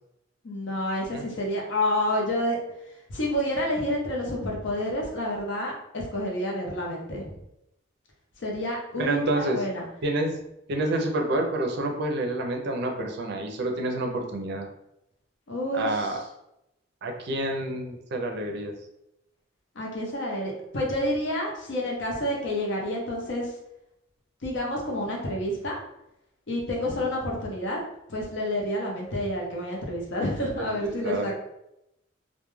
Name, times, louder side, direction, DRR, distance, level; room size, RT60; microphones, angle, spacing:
voice 1, 0.4-2.6 3.1-7.3 8.4-9.8 15.5-16.2 19.7-23.5 24.4-25.8 26.5-27.8 28.1-31.4, left 1 dB, 65° left, -1 dB, 0.7 m, -29 dB
voice 2, 9.0-9.6 10.0-10.3 10.7-14.7 15.7-16.2 17.0-18.7 30.6-31.3, right 2 dB, 60° right, 2 dB, 0.4 m, -28 dB
2.2 x 2.1 x 3.0 m, 0.83 s
head